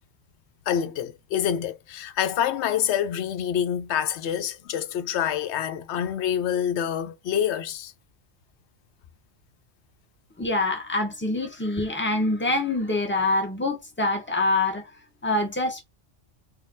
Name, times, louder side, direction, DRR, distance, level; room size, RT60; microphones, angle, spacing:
voice 1, 0.7-7.9, left 9 dB, 90° left, 0.9 m, -27 dB
voice 2, 10.4-14.8 15.2-15.8, left 2 dB, 10° left, 1.1 m, -25 dB
4.2 x 2.4 x 3.6 m
omnidirectional pair, 1.1 m